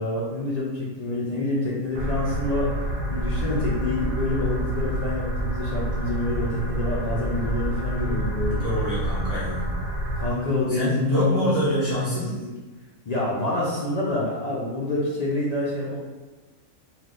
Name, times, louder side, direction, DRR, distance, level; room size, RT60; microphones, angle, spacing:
voice 1, 0.0-2.7 3.1-8.6 10.2-12.5 13.1-16.0, left 2 dB, 70° left, -6 dB, 0.3 m, -27 dB
sound 1, 1.9-10.3, equal, 70° right, 0.5 m, -28 dB
voice 2, 8.6-9.8 10.7-12.4, equal, 15° right, -11 dB, 0.6 m, -26 dB
3.3 x 2.4 x 2.5 m, 1.2 s
omnidirectional pair, 1.4 m